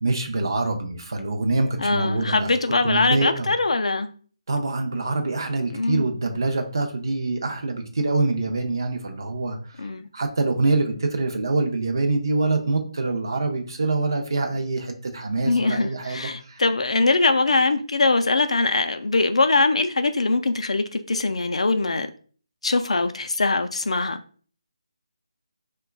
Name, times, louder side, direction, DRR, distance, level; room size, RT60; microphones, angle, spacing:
voice 1, 0.0-2.5 2.8-3.5 4.5-9.9 10.1-16.6, right 3 dB, 40° right, 0.5 m, -25 dB
voice 2, 1.8-4.1 5.7-6.0 9.8-10.1 15.5-22.1 22.6-24.2, left 3 dB, 85° left, 0.3 m, -22 dB
4.7 x 2.2 x 2.2 m
hypercardioid pair, 180°, 3 cm